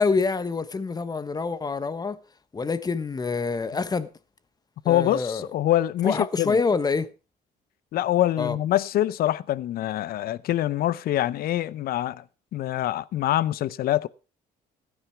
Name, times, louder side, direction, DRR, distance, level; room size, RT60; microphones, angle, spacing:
voice 1, 0.0-2.2 2.5-4.1 4.8-5.5 6.0-7.1 8.4-8.6, left 4 dB, 25° left, 1.2 m, -26 dB
voice 2, 4.9-6.6 7.9-12.2 12.5-14.1, left 13 dB, 65° left, 0.7 m, -25 dB
15.5 x 10.0 x 4.6 m
cardioid pair, 110°, 17 cm